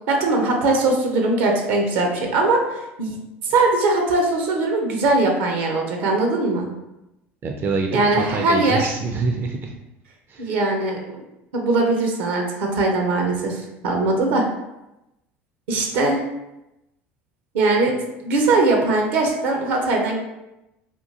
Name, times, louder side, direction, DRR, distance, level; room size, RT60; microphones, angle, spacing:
voice 1, 0.1-3.2 3.4-6.7 7.9-8.9 10.4-11.2 11.5-14.5 15.7-16.2 17.5-17.9 18.2-20.2, right 2 dB, 75° right, 1 dB, 0.8 m, -20 dB
voice 2, 7.4-9.7 10.3-10.5, right 4 dB, 40° right, 3 dB, 0.4 m, -26 dB
3.6 x 2.4 x 2.8 m, 0.94 s
hypercardioid pair, 80°, 6 cm